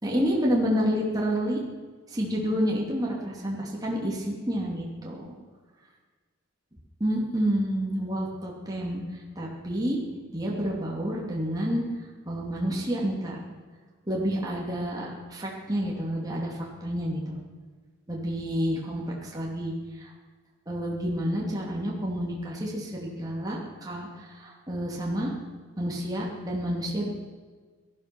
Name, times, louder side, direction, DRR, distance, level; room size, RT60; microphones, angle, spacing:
voice 1, 0.0-1.6 2.1-5.3 7.0-9.0 9.4-10.0 10.3-11.8 12.3-13.4 14.1-17.4 18.1-20.1 20.7-25.3 25.8-27.1, equal, 20° right, -3 dB, 2.8 m, -29 dB
17.5 x 13.0 x 6.2 m, 1.4 s
head